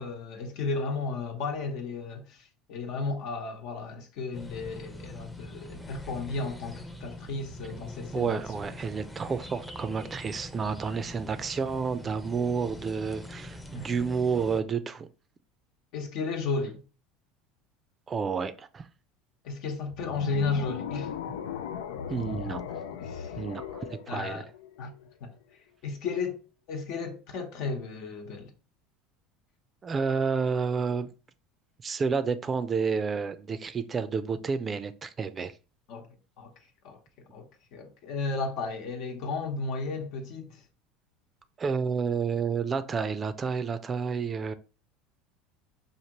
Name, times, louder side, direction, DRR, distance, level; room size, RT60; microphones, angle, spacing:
voice 1, 0.0-8.4 13.7-13.9 15.9-16.8 19.4-21.1 23.0-23.4 24.1-24.5 24.8-24.9 25.2-25.3 25.8-26.4 26.7-28.5 35.9-36.1 36.4-36.5 36.8-37.0 37.3-40.6, left 4 dB, 65° left, 1.0 m, -34 dB
sound 1, 4.3-14.6, left 1 dB, 10° left, 0.7 m, -43 dB
voice 2, 8.1-15.1 18.1-18.9 22.1-22.8 23.4-24.4 29.8-31.1 31.8-35.5 41.6-44.5, right 5 dB, 30° right, 0.5 m, -30 dB
sound 2, 19.9-25.1, left 8 dB, 85° left, 0.4 m, -38 dB
5.0 x 2.6 x 2.9 m
hypercardioid pair, 85°, 0 cm